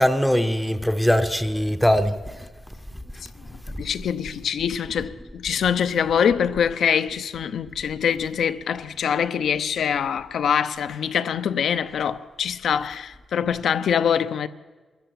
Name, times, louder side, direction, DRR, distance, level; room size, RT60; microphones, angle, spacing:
voice 1, 0.0-2.5, equal, ahead, 0.7 m, -21 dB
voice 2, 3.8-14.5, left 8 dB, 65° left, 0.7 m, -24 dB
24.0 x 14.0 x 8.5 m
wide cardioid pair, 160°, 0 cm